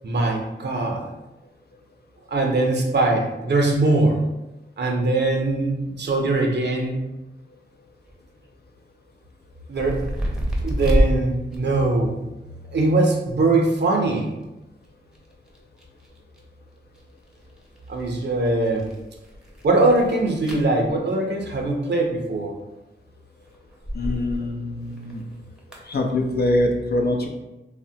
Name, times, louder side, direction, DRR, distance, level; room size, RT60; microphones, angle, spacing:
voice 1, 0.0-1.1 2.3-4.2 4.8-6.9 9.7-10.0 10.6-12.2 12.7-14.3 17.9-18.9 19.6-22.5, right 2 dB, 55° right, 1 dB, 0.6 m, -21 dB
sound 1, 7.7-7.8 8.0-8.4 9.3-11.1 11.5-12.2 13.7-13.8 14.0-14.5 14.8-16.4 16.9-21.0 22.3-22.8 23.5-24.4 24.7-25.8, equal, 5° right, 0.7 m, -28 dB
voice 2, 23.9-25.2 25.9-27.3, left 1 dB, 50° left, 1 dB, 0.5 m, -23 dB
3.2 x 2.1 x 2.7 m, 1.0 s
cardioid pair, 60°, 21 cm